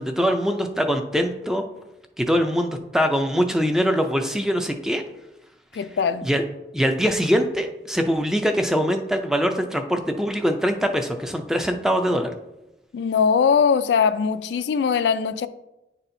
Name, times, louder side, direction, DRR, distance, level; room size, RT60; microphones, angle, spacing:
voice 1, 0.0-1.6 2.2-5.0 5.7-5.8 6.2-6.4 6.7-12.3, equal, 5° right, 0.4 m, -23 dB
voice 2, 5.7-6.3 12.9-15.5, left 6 dB, 80° left, 0.3 m, -21 dB
9.6 x 4.2 x 2.6 m
head